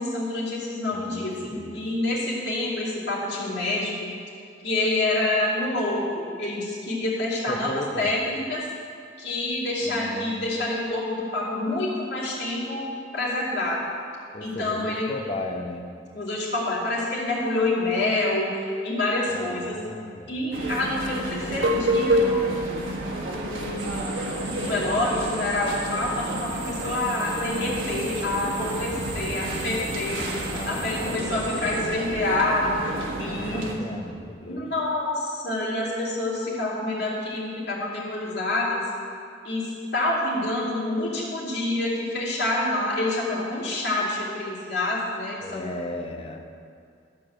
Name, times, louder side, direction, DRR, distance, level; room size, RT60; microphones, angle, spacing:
voice 1, 0.0-3.9 4.6-8.6 9.2-12.9 13.1-13.8 14.4-15.1 16.1-19.8 20.3-22.6 23.3-24.0 24.4-30.2 30.6-33.8 34.5-38.8 39.4-45.7, left 2 dB, 60° left, -7 dB, 2.9 m, -27 dB
voice 2, 0.9-1.8 7.5-8.1 9.9-10.6 14.3-15.9 19.3-20.3 24.5-25.1 30.5-31.5 33.3-34.6 45.4-46.5, left 1 dB, 30° left, 3 dB, 0.8 m, -36 dB
sound 1, 20.5-33.8, right 1 dB, 90° right, 1.5 m, -29 dB
sound 2, 23.8-31.8, right 2 dB, 45° right, 1.7 m, -38 dB
12.5 x 4.7 x 7.5 m, 2.4 s
head